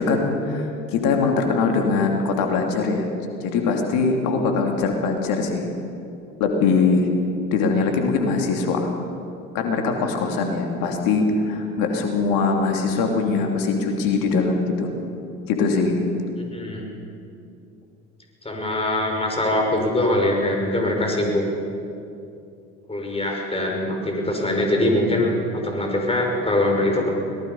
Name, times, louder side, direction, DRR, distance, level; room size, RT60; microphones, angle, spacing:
voice 1, 0.0-3.1 3.4-5.7 6.4-7.1 7.5-8.9 9.5-14.9 15.5-16.0, left 4 dB, 65° left, 3 dB, 3.1 m, -22 dB
voice 2, 16.5-16.9 18.4-21.4 22.9-27.1, left 1 dB, 15° left, 1 dB, 5.7 m, -22 dB
25.0 x 19.0 x 5.6 m, 2.6 s
hypercardioid pair, 60°, 37 cm